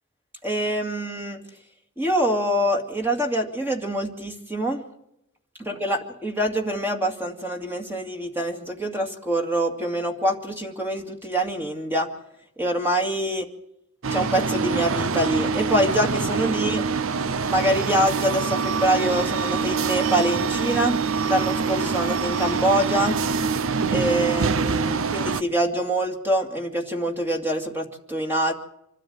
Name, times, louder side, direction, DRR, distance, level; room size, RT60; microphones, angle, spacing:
voice 1, 0.4-1.4 2.0-4.8 5.6-12.1 12.6-13.5 14.1-16.8 17.4-21.0 21.3-23.2 23.9-28.5, right 1 dB, 10° right, 2 dB, 2.3 m, -25 dB
sound 1, 14.0-25.4, right 5 dB, 65° right, 0.7 m, -25 dB
26.0 x 12.5 x 8.0 m, 0.80 s
head